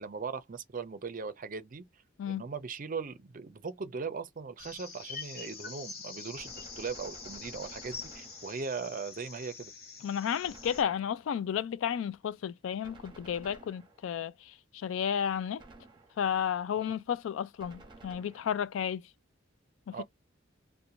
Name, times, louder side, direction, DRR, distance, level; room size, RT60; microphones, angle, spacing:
voice 1, 0.0-1.8 2.3-9.7 19.9-20.0, right 5 dB, 45° right, 0.5 m, -39 dB
sound 1, 4.6-10.8, left 5 dB, 55° left, 1.2 m, -45 dB
Gunshot gunfire, 6.3-8.9 10.4-11.5 12.8-14.3 15.6-16.4 17.6-18.7, right 2 dB, 25° right, 0.9 m, -54 dB
voice 2, 10.0-15.6 16.2-19.0 19.9-20.0, left 8 dB, 70° left, 0.3 m, -32 dB
2.9 x 2.1 x 2.5 m
head